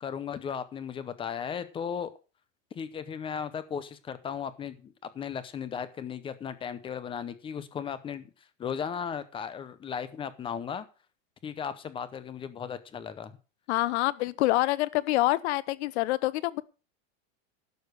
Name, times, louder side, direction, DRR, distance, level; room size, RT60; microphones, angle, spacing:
voice 1, 0.0-2.1 2.8-8.3 8.6-10.9 11.4-13.4, left 7 dB, 15° left, 0.7 m, -36 dB
voice 2, 13.7-16.6, left 18 dB, 55° left, 0.8 m, -26 dB
12.0 x 6.7 x 6.4 m
supercardioid pair, 165°, 39 cm